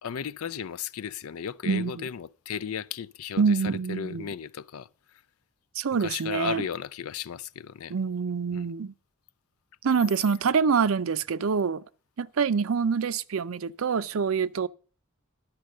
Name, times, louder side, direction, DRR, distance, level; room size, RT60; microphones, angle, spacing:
voice 1, 0.0-5.2 6.0-7.9 8.5-8.7, left 8 dB, 90° left, 0.4 m, -35 dB
voice 2, 1.6-2.0 3.4-4.3 5.8-6.6 7.9-8.9 9.8-11.8 12.2-14.7, right 5 dB, 75° right, 0.5 m, -26 dB
11.5 x 6.2 x 6.5 m
head